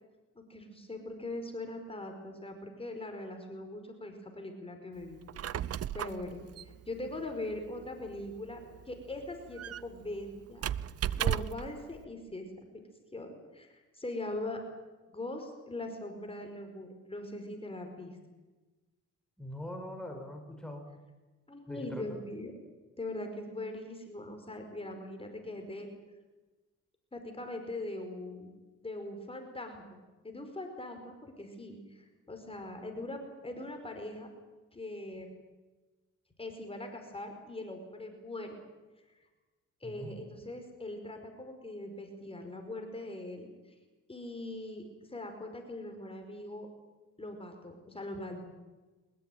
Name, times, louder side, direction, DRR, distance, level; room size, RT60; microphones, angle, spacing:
voice 1, 0.3-5.7 5.9-8.6 8.8-10.6 11.0-12.5 13.1-14.6 15.1-18.2 21.5-22.5 23.0-25.9 27.1-28.5 28.8-30.0 30.2-34.3 34.7-35.3 36.4-38.6 39.8-43.7 44.1-44.8 45.1-46.7 47.2-48.4, left 2 dB, 20° left, 4 dB, 5.0 m, -41 dB
Squeak, 5.1-11.8, right 11 dB, 50° right, 0.8 m, -37 dB
voice 2, 19.4-20.9 21.7-22.2 39.8-40.2, equal, ahead, 2 dB, 5.2 m, -42 dB
23.5 x 21.0 x 9.4 m, 1.2 s
cardioid pair, 90°, 30 cm